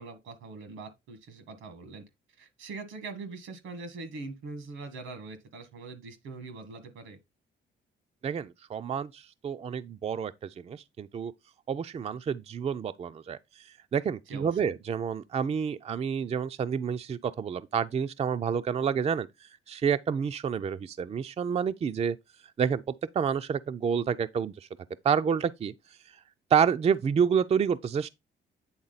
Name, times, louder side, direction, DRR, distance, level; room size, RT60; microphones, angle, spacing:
voice 1, 0.0-2.0 2.4-7.2 14.3-14.6, right 3 dB, 90° right, 1.6 m, -42 dB
voice 2, 8.2-10.3 10.6-11.3 11.7-13.4 13.9-19.3 19.7-22.2 22.6-22.8 23.1-24.5 25.0-25.7 26.5-28.1, right 7 dB, 30° right, 0.4 m, -28 dB
8.8 x 3.7 x 4.0 m
cardioid pair, 90°, 20 cm